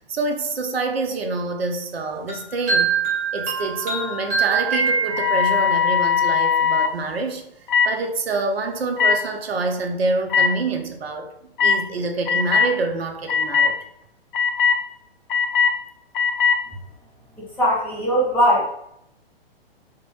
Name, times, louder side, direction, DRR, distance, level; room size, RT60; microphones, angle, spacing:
voice 1, 0.1-3.0 3.3-7.5 7.9-11.3 11.6-13.8, right 3 dB, 75° right, 0.6 m, -26 dB
sound 1, 2.3-5.8, right 5 dB, 40° right, 1.3 m, -24 dB
sound 2, 5.1-6.9 7.7-7.9 9.0-9.2 10.3-10.5 11.6-11.8 12.3-12.7 13.3-13.7 14.3-14.8 15.3-15.7 16.1-16.6, left 6 dB, 55° left, 0.4 m, -19 dB
voice 2, 17.6-18.7, equal, 5° left, 0.6 m, -19 dB
3.0 x 2.1 x 2.9 m
figure-of-eight pair, 120°, 31 cm